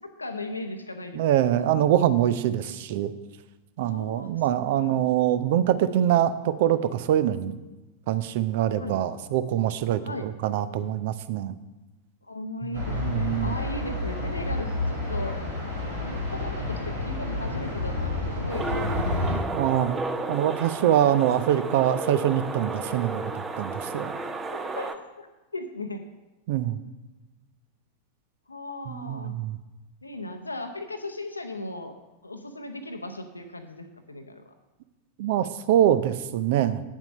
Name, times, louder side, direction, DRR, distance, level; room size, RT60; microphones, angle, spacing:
voice 1, 0.0-1.7 3.8-4.3 4.6-5.0 8.8-9.0 10.0-10.3 12.2-15.4 16.0-19.5 24.5-25.3 25.5-26.0 28.5-29.3 30.0-31.9 32.2-34.4, left 2 dB, 80° left, 7 dB, 0.7 m, -37 dB
voice 2, 1.2-3.1 3.8-7.6 8.1-11.5 12.6-13.5 19.5-20.0 20.3-23.3 23.6-24.1 26.5-26.8 28.9-29.6 35.2-36.8, right 11 dB, 50° right, 14 dB, 0.6 m, -24 dB
sound 1, 12.7-19.3, left 2 dB, 75° right, 3.5 m, -30 dB
sound 2, 18.5-24.9, right 3 dB, 20° right, 0.7 m, -33 dB
9.3 x 7.2 x 5.3 m, 1.1 s
figure-of-eight pair, 90°, 0 cm